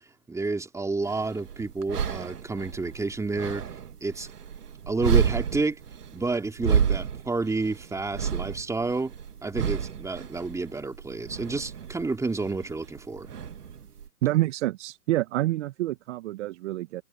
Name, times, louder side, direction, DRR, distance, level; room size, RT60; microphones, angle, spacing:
voice 1, 0.3-3.6 4.0-4.3 4.9-5.8 6.1-9.1 9.4-13.3, right 3 dB, 5° right, 3.0 m, -30 dB
sound 1, 1.0-14.1, right 7 dB, 80° right, 2.1 m, -31 dB
voice 2, 14.2-17.0, right 16 dB, 50° right, 1.4 m, -27 dB
hypercardioid pair, 120°, 45 cm